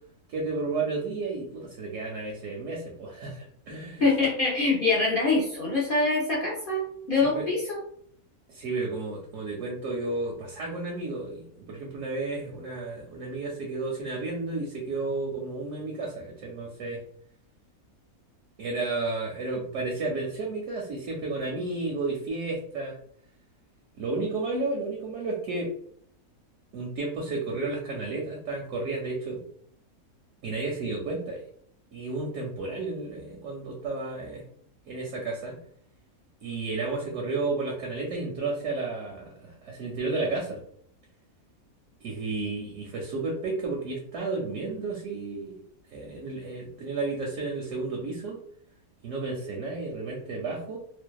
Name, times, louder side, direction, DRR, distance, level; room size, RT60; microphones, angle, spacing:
voice 1, 0.3-4.0 7.2-7.5 8.5-17.0 18.6-23.0 24.0-25.7 26.7-29.4 30.4-31.4 31.9-34.4 34.9-35.6 36.4-40.6 42.0-45.6 45.9-48.4 49.0-50.8, right 3 dB, 70° right, -1 dB, 0.8 m, -32 dB
voice 2, 4.0-7.8, left 3 dB, 55° left, -5 dB, 0.6 m, -24 dB
2.6 x 2.1 x 2.3 m, 0.63 s
omnidirectional pair, 1.6 m